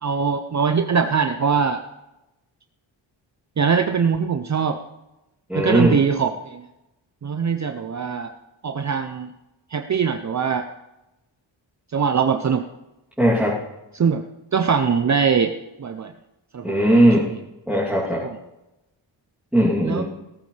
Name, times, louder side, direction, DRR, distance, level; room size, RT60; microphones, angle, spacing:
voice 1, 0.0-1.8 3.6-4.8 5.5-6.6 7.2-8.3 8.6-9.3 9.7-10.6 11.9-12.6 13.9-14.2 14.5-15.5 15.8-16.1 16.5-16.9 17.2-17.4 18.2-18.4 19.8-20.0, right 6 dB, 35° right, 7 dB, 0.7 m, -22 dB
voice 2, 5.5-6.0 13.2-13.5 16.6-17.3 17.7-18.2 19.5-20.0, right 1 dB, 5° right, -8 dB, 3.1 m, -18 dB
18.0 x 14.0 x 3.4 m, 0.96 s
wide cardioid pair, 115°, 48 cm